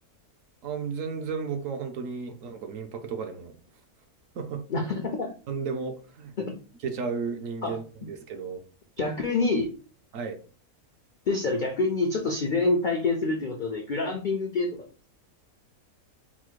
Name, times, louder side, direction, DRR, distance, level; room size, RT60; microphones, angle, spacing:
voice 1, 0.6-3.5 4.3-4.6 5.5-6.3 6.8-8.6 10.1-10.4, right 5 dB, 65° right, 6 dB, 1.0 m, -33 dB
voice 2, 4.7-5.3 6.4-6.5 7.6-7.8 9.0-9.7 11.3-14.9, left 3 dB, 70° left, 4 dB, 0.4 m, -27 dB
4.2 x 2.0 x 4.5 m, 0.38 s
omnidirectional pair, 1.6 m